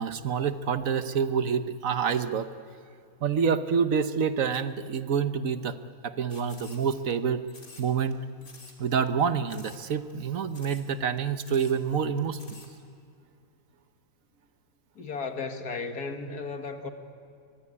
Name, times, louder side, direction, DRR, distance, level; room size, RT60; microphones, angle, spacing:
voice 1, 0.0-2.5 3.2-5.7 6.0-7.4 7.8-8.2 8.8-12.6, right 6 dB, 60° right, 11 dB, 1.3 m, -27 dB
sound 1, 6.3-7.1 7.5-8.1 8.4-8.8 9.1-9.2 9.5-9.8 10.1-10.2 10.5-10.9 11.2-11.3 11.4-11.8 12.2-12.7, left 3 dB, 65° left, 3.7 m, -50 dB
voice 2, 15.0-16.9, left 4 dB, 80° left, 6 dB, 2.2 m, -35 dB
23.5 x 23.0 x 9.8 m, 2.3 s
omnidirectional pair, 1.6 m